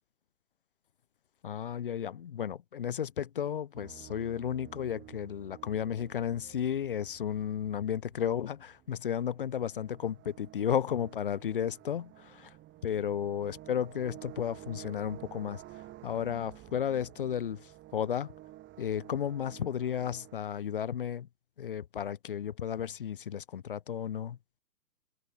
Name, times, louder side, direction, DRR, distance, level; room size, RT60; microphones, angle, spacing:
voice 1, 1.4-12.5 12.8-18.3 18.8-21.3 21.6-24.4, left 9 dB, 35° left, 0.4 m, -33 dB
sound 1, 3.7-20.4, right 15 dB, 25° right, 7.6 m, -52 dB
figure-of-eight pair, 125°, 49 cm